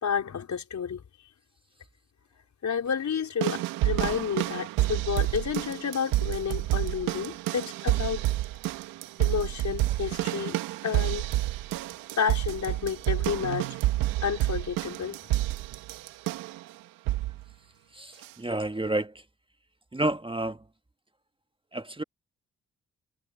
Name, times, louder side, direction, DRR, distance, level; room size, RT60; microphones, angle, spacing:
voice 1, 0.0-1.0 2.6-8.3 9.2-10.6 10.8-11.3 12.2-13.8 14.2-15.2, left 7 dB, 60° left, 4.7 m, -30 dB
sound 1, 3.4-16.6 17.1-17.4 18.2-18.3, right 16 dB, 85° right, 2.0 m, -29 dB
voice 2, 17.9-19.1 19.9-20.6 21.7-22.0, right 2 dB, 15° right, 1.5 m, -30 dB
supercardioid pair, 50°, 33 cm